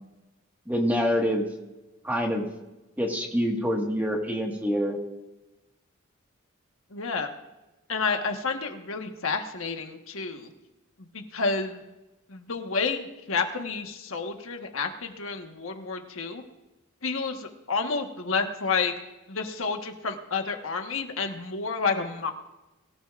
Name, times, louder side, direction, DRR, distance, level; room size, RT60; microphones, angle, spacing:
voice 1, 0.7-1.5 2.0-2.5 3.0-5.0, equal, 10° right, 0 dB, 1.7 m, -26 dB
voice 2, 6.9-7.3 7.9-10.5 11.0-11.8 12.3-16.4 17.0-18.9 19.3-22.3, left 4 dB, 75° left, 4 dB, 1.4 m, -30 dB
22.5 x 14.0 x 2.5 m, 1.0 s
head